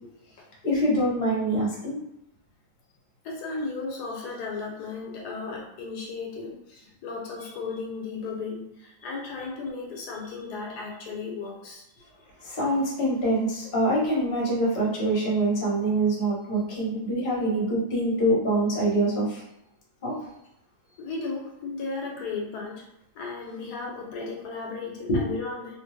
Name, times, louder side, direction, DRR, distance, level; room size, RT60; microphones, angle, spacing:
voice 1, 0.6-2.0 12.4-19.4 20.0-20.1 25.1-25.2, right 1 dB, 35° left, -5 dB, 1.0 m, -25 dB
voice 2, 3.2-11.8 21.0-22.8 23.1-25.8, left 4 dB, 80° left, -1 dB, 1.1 m, -35 dB
2.6 x 2.3 x 3.2 m, 0.86 s
omnidirectional pair, 1.7 m